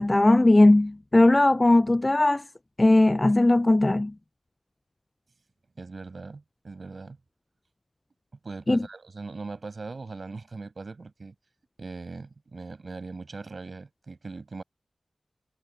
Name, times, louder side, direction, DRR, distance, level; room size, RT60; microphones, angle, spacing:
voice 1, 0.0-2.4 2.8-4.1 8.7-8.8, left 2 dB, 30° left, 0.4 m, -19 dB
voice 2, 5.8-7.2 8.4-11.3 11.8-14.6, right 3 dB, 65° right, 6.7 m, -40 dB
wide cardioid pair, 55°, 0 cm